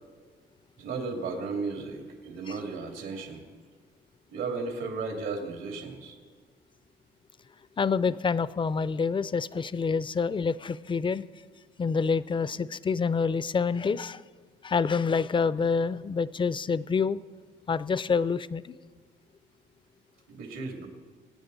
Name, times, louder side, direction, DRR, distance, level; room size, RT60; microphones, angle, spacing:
voice 1, 0.8-3.4 4.3-6.2 20.3-20.9, right 4 dB, 80° right, 2 dB, 2.7 m, -35 dB
voice 2, 7.8-11.3 11.8-14.2 14.6-17.2 17.7-18.8, left 5 dB, 25° left, 17 dB, 0.5 m, -27 dB
25.0 x 9.3 x 4.0 m, 1.5 s
cardioid pair, 90°, 20 cm